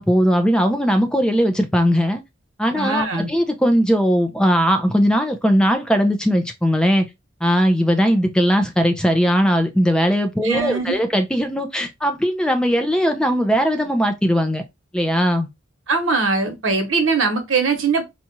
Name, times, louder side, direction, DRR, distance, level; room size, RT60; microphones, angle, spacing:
voice 1, 0.0-2.2 2.6-7.1 7.4-14.6 14.9-15.5, equal, 5° left, 0.5 m, -19 dB
voice 2, 2.7-3.3 10.4-11.0 15.9-18.1, right 4 dB, 80° right, 1.1 m, -21 dB
4.2 x 2.4 x 2.9 m
head